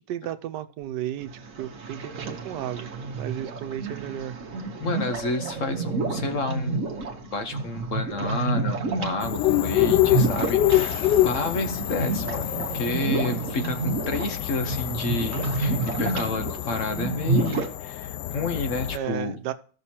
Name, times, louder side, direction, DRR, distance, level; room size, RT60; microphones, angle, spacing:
voice 1, 0.1-1.3 1.6-4.4 18.9-19.5, right 11 dB, 90° right, 1.3 m, -33 dB
sound 1, 1.2-17.7, right 3 dB, 55° right, 1.4 m, -30 dB
voice 2, 4.8-19.4, left 3 dB, 55° left, 1.2 m, -30 dB
sound 2, 9.2-19.0, left 13 dB, 85° left, 1.2 m, -26 dB
15.0 x 6.2 x 2.9 m
omnidirectional pair, 1.8 m